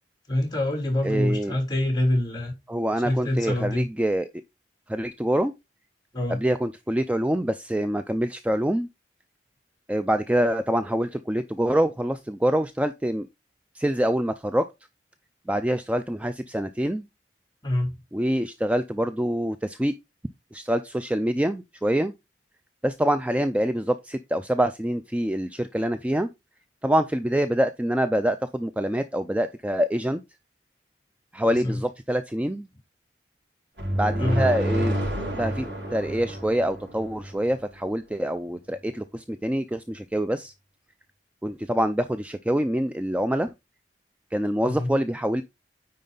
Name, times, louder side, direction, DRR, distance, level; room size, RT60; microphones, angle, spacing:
voice 1, 0.3-2.5 3.0-3.9 6.1-6.4 17.6-18.0 31.5-31.8 34.2-34.4 44.6-44.9, left 1 dB, 25° left, 3.2 m, -25 dB
voice 2, 1.0-1.6 2.7-4.3 4.9-5.5 6.3-8.9 9.9-13.3 13.7-14.7 15.5-17.0 18.1-19.9 20.5-22.1 22.8-26.3 26.8-30.2 31.3-32.7 33.9-35.0 35.3-35.6 35.9-40.5 41.4-43.5 44.3-45.4, right 1 dB, 5° right, 0.3 m, -25 dB
sound 1, 33.8-37.5, equal, 80° right, 3.2 m, -29 dB
9.4 x 4.3 x 3.8 m
head